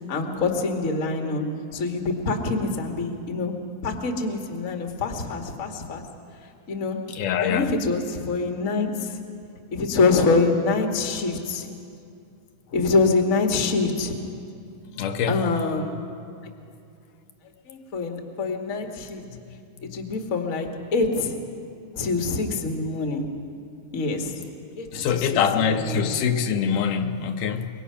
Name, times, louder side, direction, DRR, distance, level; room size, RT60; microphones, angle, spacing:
voice 1, 0.1-1.5 1.7-3.5 3.8-6.0 6.7-7.0 7.4-9.2 9.7-11.7 12.7-14.1 15.3-16.0 17.7-19.2 19.8-21.4 22.0-23.3 23.9-24.4 24.8-25.3 25.6-26.2, left 3 dB, 35° left, 3 dB, 1.5 m, -25 dB
voice 2, 7.1-7.7 15.0-15.4 19.3-19.4 19.8-19.9 24.9-27.7, left 7 dB, 80° left, 5 dB, 2.4 m, -24 dB
25.5 x 23.0 x 5.7 m, 2.5 s
omnidirectional pair, 3.7 m